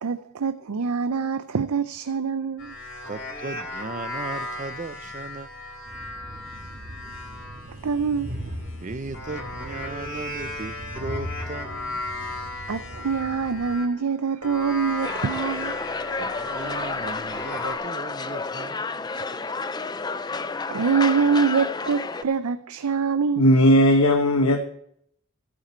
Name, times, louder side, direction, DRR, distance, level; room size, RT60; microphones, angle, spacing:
voice 1, 0.0-2.8 7.8-8.3 12.7-15.8 20.7-23.4, right 5 dB, 90° right, 0.5 m, -25 dB
sound 1, 2.6-13.9 14.4-17.8, left 2 dB, 55° left, 3.2 m, -36 dB
voice 2, 3.1-5.5 8.8-12.0 16.2-19.2, right 3 dB, 35° right, 0.5 m, -36 dB
Train, 5.9-13.7, equal, 70° right, 2.6 m, -39 dB
sound 2, 15.0-22.2, left 4 dB, 20° left, 0.4 m, -30 dB
voice 3, 23.4-24.7, equal, 85° left, 1.1 m, -17 dB
14.5 x 8.9 x 4.4 m
head